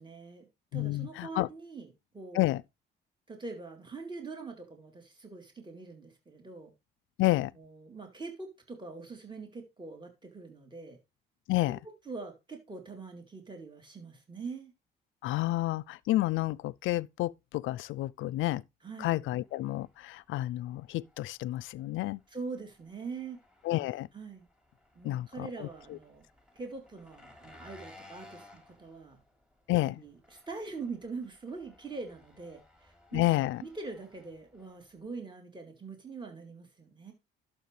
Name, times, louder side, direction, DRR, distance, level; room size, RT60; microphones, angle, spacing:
voice 1, 0.0-1.9 2.1-2.4 3.3-6.7 7.6-11.0 12.1-14.7 18.8-19.1 22.3-23.4 24.1-24.5 25.0-26.2 26.6-29.2 30.0-33.3 33.6-37.1, right 4 dB, 25° right, 3.4 m, -43 dB
voice 2, 0.7-1.5 2.3-2.6 7.2-7.5 11.5-11.8 15.2-18.6 19.0-22.2 23.6-24.1 25.0-26.0 29.7-30.0 33.1-33.6, left 17 dB, 85° left, 0.4 m, -30 dB
Engine, 19.3-35.1, left 2 dB, 5° right, 3.2 m, -59 dB
12.0 x 7.2 x 3.3 m
cardioid pair, 90°, 20 cm